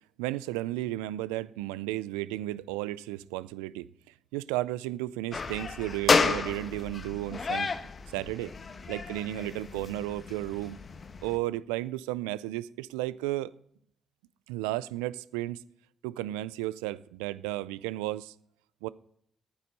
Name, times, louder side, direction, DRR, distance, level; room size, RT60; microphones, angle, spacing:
voice 1, 0.2-3.9 4.3-7.7 8.1-8.5 8.9-10.8 11.2-13.5 14.5-15.6 16.0-18.3 18.8-18.9, right 16 dB, 90° right, 0.3 m, -33 dB
sound 1, 5.3-11.4, left 4 dB, 50° left, 1.1 m, -31 dB
12.0 x 9.4 x 5.4 m
hypercardioid pair, 45°, 0 cm